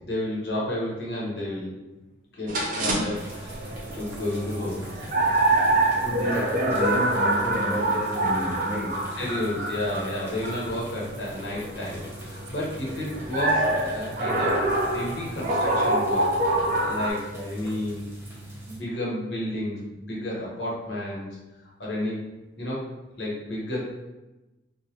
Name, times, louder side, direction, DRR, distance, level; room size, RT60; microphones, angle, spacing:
voice 1, 0.0-1.7 2.3-4.8 9.2-18.0 18.7-21.3 21.8-22.2 22.6-22.8 23.2-23.8, left 1 dB, 70° left, -5 dB, 1.0 m, -31 dB
sound 1, 2.5-17.1, right 2 dB, 45° right, 0.5 m, -26 dB
sound 2, 3.1-18.8, right 1 dB, 15° right, 0.7 m, -42 dB
voice 2, 6.0-9.0, equal, 40° left, -6 dB, 0.5 m, -30 dB
3.1 x 2.3 x 2.8 m, 1.0 s
head